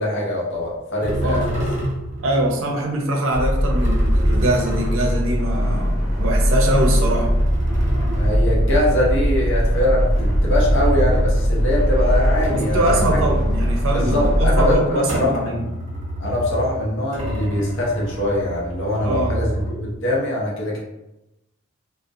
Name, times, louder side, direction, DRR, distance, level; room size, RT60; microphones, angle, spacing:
voice 1, 0.0-1.6 2.1-2.2 8.0-13.2 13.9-15.6 16.2-20.8, left 1 dB, 60° left, -3 dB, 0.7 m, -23 dB
sound 1, 0.5-0.7 1.0-2.7 3.5-6.1 6.7-11.9 12.3-14.5 15.0-20.1, right 1 dB, 35° right, 0.8 m, -28 dB
voice 2, 2.2-7.3 12.5-15.6 19.0-19.3, right 1 dB, 70° right, 1 dB, 0.5 m, -23 dB
sound 2, 3.3-14.8, equal, 20° left, 0.5 m, -20 dB
2.4 x 2.0 x 2.6 m, 0.93 s
head